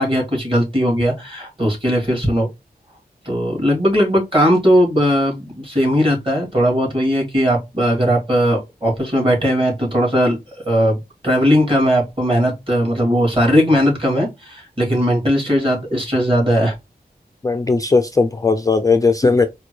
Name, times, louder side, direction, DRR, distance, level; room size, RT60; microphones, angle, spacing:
voice 1, 0.0-2.5 3.3-10.4 10.6-16.8, equal, 30° right, 2.2 m, -18 dB
voice 2, 17.4-19.5, left 4 dB, 20° left, 0.3 m, -16 dB
4.2 x 2.2 x 3.1 m
wide cardioid pair, 85°, 17 cm